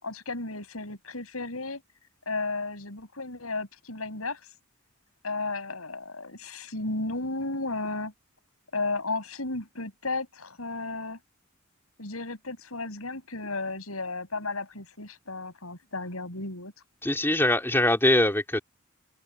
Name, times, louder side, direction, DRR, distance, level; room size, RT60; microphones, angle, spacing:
voice 1, 0.0-1.8 2.2-4.4 5.2-8.1 8.7-11.2 12.0-16.7, left 3 dB, 90° left, 6.6 m, -34 dB
voice 2, 17.0-18.6, left 1 dB, 10° left, 2.8 m, -22 dB
open air
head